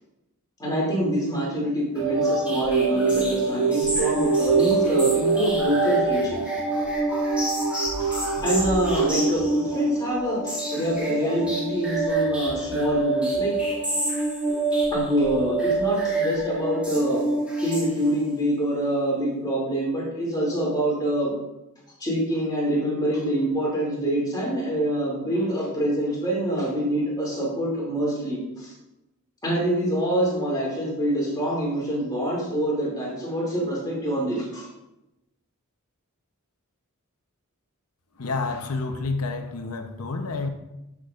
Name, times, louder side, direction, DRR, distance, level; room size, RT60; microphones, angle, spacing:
voice 1, 0.6-6.4 8.1-13.5 14.9-17.2 17.6-21.3 22.0-28.7 29.4-34.7, right 1 dB, 20° left, 2.6 m, -25 dB
sound 1, 2.0-18.4, right 3 dB, 5° right, 2.2 m, -25 dB
voice 2, 38.2-40.5, left 3 dB, 75° left, 0.8 m, -29 dB
13.0 x 6.1 x 2.5 m
head